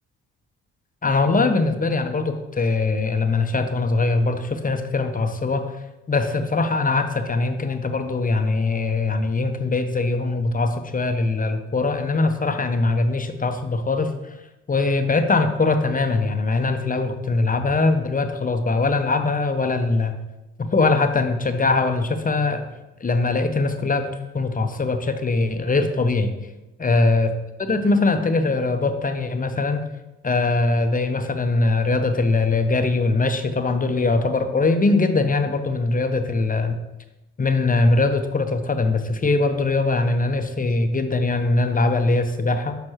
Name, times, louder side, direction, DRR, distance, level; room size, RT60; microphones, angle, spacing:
voice 1, 1.0-5.7 6.1-14.3 14.7-20.2 20.7-22.7 23.0-24.1 24.3-26.3 26.8-27.3 27.6-29.8 30.2-36.8 37.4-42.8, left 3 dB, 25° left, 7 dB, 0.7 m, -21 dB
6.2 x 5.2 x 3.1 m, 1.0 s
hypercardioid pair, 50°, 34 cm